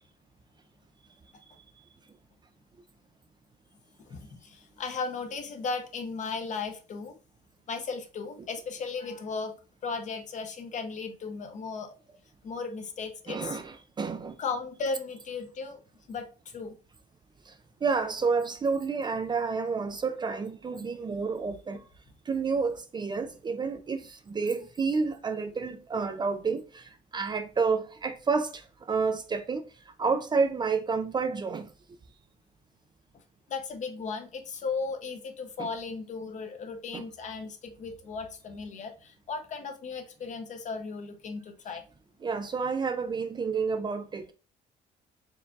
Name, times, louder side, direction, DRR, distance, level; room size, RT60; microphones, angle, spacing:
voice 1, 4.0-7.2 7.7-9.5 9.8-11.9 12.4-13.6 14.4-15.8 16.1-16.8 33.1-33.2 33.5-41.8, left 4 dB, 45° left, 0.8 m, -36 dB
voice 2, 13.3-14.3 17.8-21.8 22.3-24.0 24.3-26.8 27.1-28.5 28.9-29.6 30.0-31.7 35.6-35.7 36.9-37.0 42.2-44.3, right 4 dB, 25° right, 0.4 m, -29 dB
4.6 x 3.4 x 2.6 m
cardioid pair, 110°, 17 cm